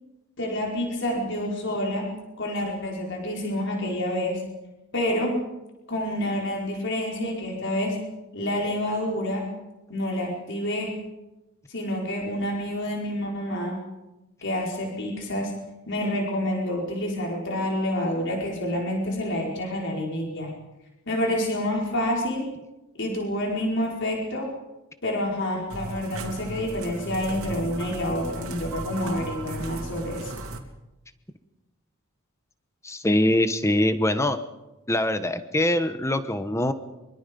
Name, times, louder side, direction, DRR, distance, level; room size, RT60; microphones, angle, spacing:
voice 1, 0.4-2.1 2.4-4.4 4.9-5.3 5.9-8.0 8.3-9.5 9.9-10.9 11.7-13.8 14.4-15.5 15.9-20.5 21.1-22.5 23.0-24.5 25.0-30.3, left 1 dB, 55° left, -1 dB, 5.1 m, -28 dB
sound 1, 25.7-30.6, right 2 dB, 70° right, 2.8 m, -36 dB
voice 2, 32.8-34.4 34.9-36.7, left 1 dB, 15° left, 11 dB, 1.1 m, -23 dB
25.0 x 23.5 x 5.5 m, 1.0 s
head